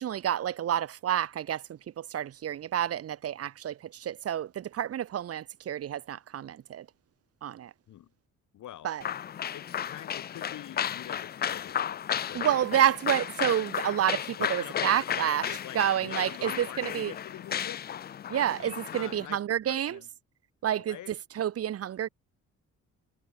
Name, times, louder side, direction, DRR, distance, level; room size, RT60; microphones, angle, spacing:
voice 1, 0.0-6.9 7.4-7.7 8.8-9.0 12.3-17.1 18.3-20.0 20.6-21.0 21.4-22.1, right 10 dB, 50° right, 0.8 m, -29 dB
voice 2, 8.5-8.9 9.5-12.6 14.4-17.8 18.6-19.4 19.7-20.1 20.8-21.1, left 12 dB, 75° left, 4.8 m, -45 dB
sound 1, 9.0-19.3, left 9 dB, 35° left, 0.4 m, -34 dB
cardioid pair, 90°, 30 cm